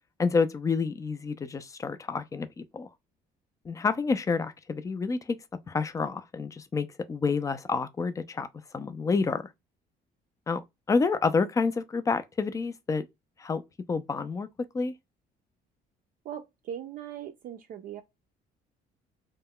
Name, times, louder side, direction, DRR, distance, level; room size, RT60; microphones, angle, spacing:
voice 1, 0.2-2.9 3.7-5.4 5.7-8.5 8.7-9.4 10.5-10.6 10.9-13.0 13.4-13.6 13.9-14.5 14.7-14.9, left 4 dB, 20° left, 0.3 m, -28 dB
voice 2, 16.2-18.0, right 9 dB, 55° right, 0.4 m, -39 dB
2.2 x 2.1 x 3.5 m
cardioid pair, 110°, 17 cm